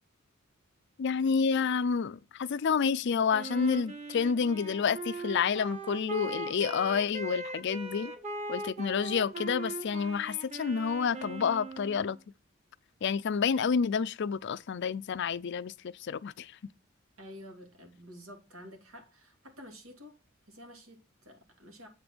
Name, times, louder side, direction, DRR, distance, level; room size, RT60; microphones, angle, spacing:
voice 1, 1.0-8.1 8.5-12.2 13.0-16.5, left 6 dB, 55° left, 0.4 m, -29 dB
Wind instrument woodwind instrument, 3.3-12.1, right 3 dB, 30° right, 1.6 m, -40 dB
voice 2, 17.2-20.2 20.5-21.9, equal, 90° right, 2.9 m, -50 dB
8.0 x 5.1 x 6.0 m
head